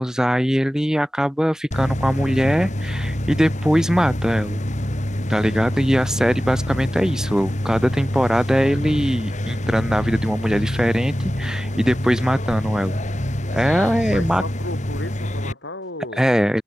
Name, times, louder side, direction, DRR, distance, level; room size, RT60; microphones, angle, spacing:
voice 1, 0.0-4.6 5.3-13.0 13.5-14.4 16.2-16.6, equal, 5° right, 2.2 m, -21 dB
sound 1, 1.7-15.5, left 1 dB, 45° left, 3.1 m, -26 dB
voice 2, 14.1-16.3, left 2 dB, 80° left, 7.4 m, -34 dB
head